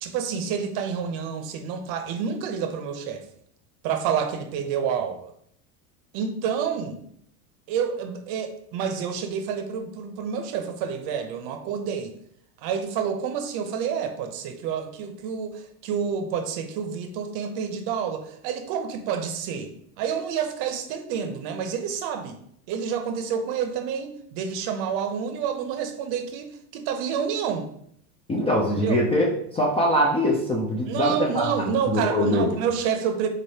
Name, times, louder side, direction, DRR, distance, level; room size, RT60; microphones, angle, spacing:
voice 1, 0.0-3.2 3.8-5.3 6.1-7.0 7.7-12.1 12.6-19.7 20.0-22.4 22.7-27.7 28.8-29.0 30.9-33.3, right 7 dB, 55° right, 7 dB, 0.7 m, -28 dB
voice 2, 28.3-31.5 31.9-32.5, equal, 15° left, -2 dB, 0.3 m, -23 dB
3.9 x 3.2 x 2.8 m, 0.68 s
supercardioid pair, 105°, 45 cm